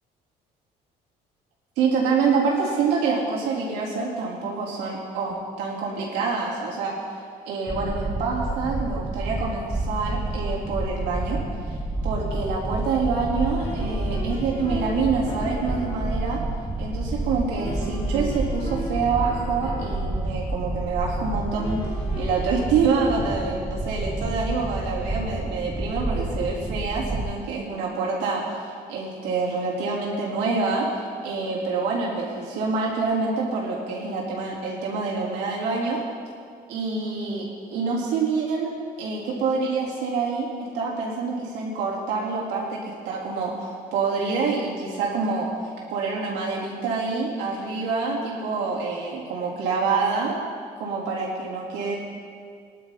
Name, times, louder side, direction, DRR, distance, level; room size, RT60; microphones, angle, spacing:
voice 1, 1.8-7.0 7.5-11.4 12.0-16.4 16.8-21.8 22.2-30.9 31.2-36.0 36.7-37.4 37.7-40.5 40.7-42.8 43.1-50.4 50.8-52.0, right 4 dB, 90° right, -5 dB, 3.8 m, -26 dB
sound 1, 7.7-27.3, right 2 dB, 10° right, 1.2 m, -29 dB
sound 2, 12.1-12.2 13.6-16.2 17.6-20.2 21.6-22.6, left 1 dB, 40° left, 2.9 m, -38 dB
20.0 x 11.5 x 4.2 m, 2.2 s
cardioid pair, 110°, 17 cm